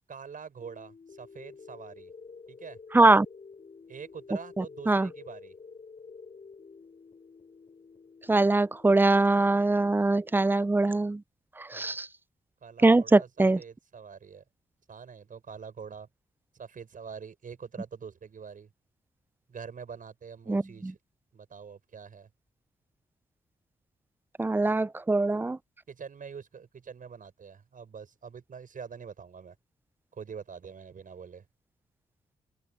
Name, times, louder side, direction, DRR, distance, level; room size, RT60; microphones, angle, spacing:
voice 1, 0.1-2.1 2.5-2.8 3.9-5.5 11.7-12.0 12.6-14.4 14.9-16.1 16.5-18.7 19.5-21.0 21.3-22.3 25.9-29.6 30.1-31.4, right 6 dB, 60° right, 6.5 m, -45 dB
sound 1, 0.6-10.6, left 5 dB, 45° left, 7.8 m, -50 dB
voice 2, 2.9-3.3 4.6-5.1 8.3-11.2 11.6-12.1 12.8-13.6 20.5-20.9 24.4-25.6, right 2 dB, 15° right, 0.4 m, -23 dB
open air
cardioid pair, 60°, 16 cm